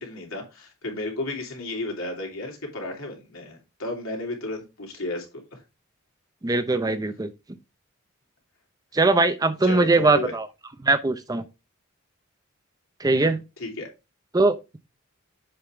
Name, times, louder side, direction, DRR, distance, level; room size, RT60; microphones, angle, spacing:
voice 1, 0.0-5.6 9.6-10.3 13.6-13.9, left 2 dB, 75° left, 2.8 m, -33 dB
voice 2, 6.4-7.3 8.9-10.5 10.8-11.4 13.0-13.4 14.3-14.6, right 2 dB, 15° right, 0.5 m, -21 dB
7.7 x 5.4 x 3.2 m
head